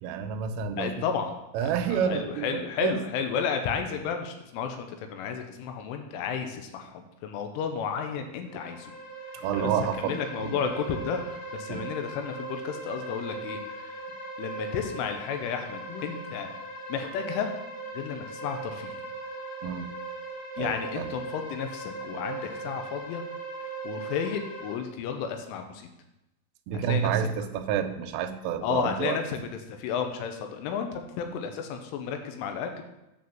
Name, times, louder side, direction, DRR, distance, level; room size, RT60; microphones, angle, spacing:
voice 1, 0.0-1.1 1.5-3.0 9.3-10.6 11.7-11.9 19.6-19.9 20.6-21.1 26.7-29.2, right 8 dB, 85° right, 7 dB, 3.2 m, -29 dB
voice 2, 0.8-8.9 9.5-9.7 10.0-14.0 14.4-16.5 16.9-17.5 17.9-18.9 20.6-23.2 23.8-25.9 26.9-27.1 28.6-32.8, left 7 dB, 85° left, 5 dB, 3.2 m, -32 dB
sound 1, 8.4-24.7, right 3 dB, 55° left, 2.0 m, -39 dB
9.4 x 4.4 x 7.3 m, 0.92 s
omnidirectional pair, 5.8 m